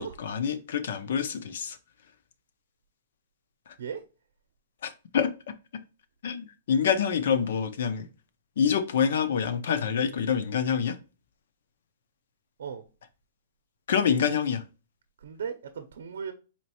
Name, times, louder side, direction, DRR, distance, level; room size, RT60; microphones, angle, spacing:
voice 1, 0.0-1.8 4.8-5.5 6.2-8.1 8.6-11.0 13.9-14.6, left 7 dB, 60° left, 0.6 m, -26 dB
voice 2, 15.2-16.3, right 7 dB, 75° right, 0.6 m, -36 dB
4.3 x 3.1 x 2.9 m
hypercardioid pair, 175°, 0 cm